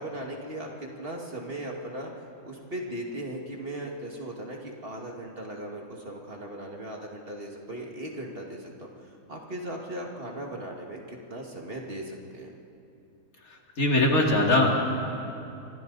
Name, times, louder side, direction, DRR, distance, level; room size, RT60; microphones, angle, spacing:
voice 1, 0.0-2.1 2.5-12.5, right 1 dB, 40° right, 0 dB, 2.3 m, -38 dB
voice 2, 13.4-14.7, left 2 dB, 70° left, -1 dB, 3.0 m, -22 dB
28.5 x 25.5 x 4.1 m, 2.7 s
omnidirectional pair, 1.5 m